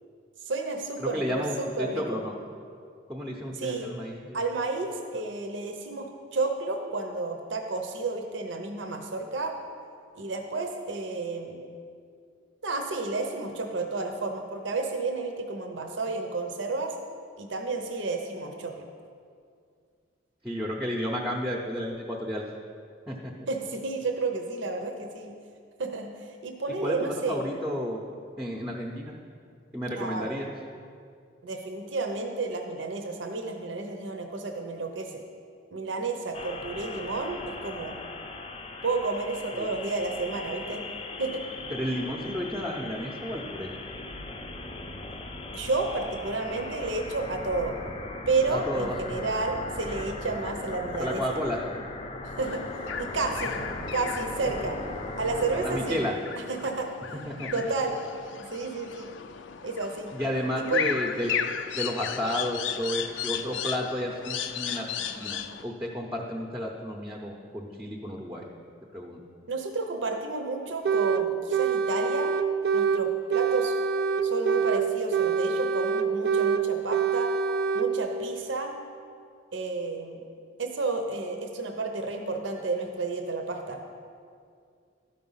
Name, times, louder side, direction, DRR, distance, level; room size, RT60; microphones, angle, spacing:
voice 1, 0.5-2.2 3.6-3.9 4.3-9.5 10.1-11.6 12.6-16.9 17.4-18.8 23.5-25.3 25.8-27.4 30.0-30.3 31.4-35.2 35.7-38.0 38.8-40.8 41.2-41.4 45.5-47.8 48.3-51.4 52.2-53.6 53.9-54.8 55.2-56.0 56.5-56.9 57.5-58.0 58.4-59.1 59.6-60.1 60.6-60.9 69.5-72.3 72.7-73.7 74.2-77.3 77.7-78.8 79.5-80.2 80.6-83.8, right 3 dB, 75° right, 4 dB, 0.7 m, -31 dB
voice 2, 1.0-2.3 3.1-4.5 20.4-22.4 23.1-23.3 26.8-28.0 28.4-29.2 29.7-30.5 39.5-39.7 41.7-43.7 48.5-49.0 51.0-51.6 54.6-54.7 55.6-56.1 57.3-57.5 60.1-61.3 61.7-68.5 68.9-69.2, equal, 10° right, -1 dB, 0.7 m, -32 dB
sound 1, 36.3-55.9, left 2 dB, 30° left, 0.6 m, -38 dB
sound 2, 52.4-65.6, left 8 dB, 75° left, 0.5 m, -35 dB
sound 3, 70.9-71.2 71.5-73.0 73.3-74.8 75.1-76.6 76.9-77.9, right 6 dB, 55° right, 0.3 m, -25 dB
12.0 x 5.1 x 5.6 m, 2.3 s
head